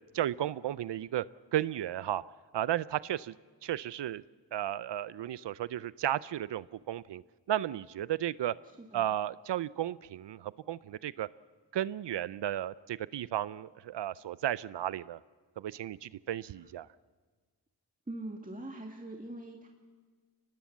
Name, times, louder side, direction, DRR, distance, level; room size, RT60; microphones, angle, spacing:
voice 1, 0.1-1.2 1.5-2.2 2.5-3.3 3.6-4.2 4.5-7.2 7.5-8.5 8.9-11.3 11.7-15.2 15.6-16.9, right 12 dB, 75° right, 18 dB, 0.5 m, -34 dB
voice 2, 18.1-19.7, right 1 dB, 20° right, 1 dB, 2.1 m, -42 dB
23.5 x 19.5 x 7.3 m, 1.4 s
cardioid pair, 60°, 42 cm